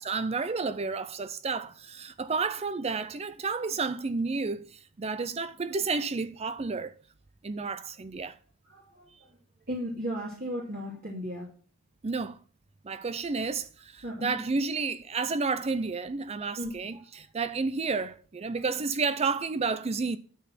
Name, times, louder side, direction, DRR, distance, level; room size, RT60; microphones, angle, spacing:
voice 1, 0.0-6.9 7.4-8.4 12.0-12.4 12.8-20.2, right 4 dB, 30° right, 0.4 m, -31 dB
voice 2, 8.7-9.3 9.7-11.5 14.0-14.3 16.6-17.0, equal, 45° right, 2.6 m, -36 dB
12.5 x 5.9 x 5.9 m
head